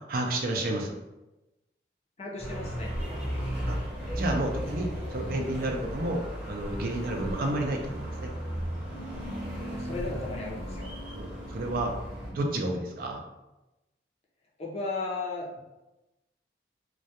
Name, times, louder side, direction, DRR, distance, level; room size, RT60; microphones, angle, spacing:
voice 1, 0.1-1.0 3.7-3.8 4.1-8.3 11.1-11.9 12.3-13.2, right 1 dB, 50° right, 2 dB, 0.4 m, -31 dB
voice 2, 2.2-2.9 9.6-10.9 14.6-15.6, left 3 dB, 35° left, -2 dB, 0.5 m, -35 dB
sound 1, 2.4-12.3, equal, 5° right, 0.6 m, -35 dB
2.2 x 2.1 x 2.7 m, 0.98 s
head